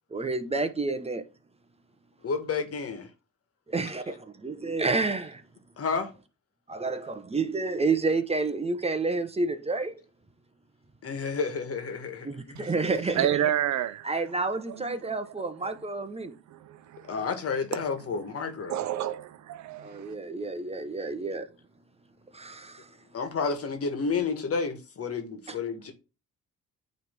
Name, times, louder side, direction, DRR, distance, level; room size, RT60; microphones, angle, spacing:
voice 1, 0.1-1.3 3.7-4.1 4.4-5.4 6.7-10.0 12.2-13.3 14.0-16.3 19.8-21.5 22.3-22.9 25.5-25.6, right 3 dB, 20° right, 1.0 m, -29 dB
voice 2, 2.2-3.1 5.8-6.1 11.0-12.6 17.1-18.8 23.1-25.9, left 5 dB, 50° left, 1.7 m, -31 dB
voice 3, 13.1-14.1 14.7-14.8 15.6-15.7 16.5-17.1 18.7-20.1, right 11 dB, 70° right, 0.7 m, -29 dB
9.0 x 3.5 x 3.6 m
cardioid pair, 90°, 30 cm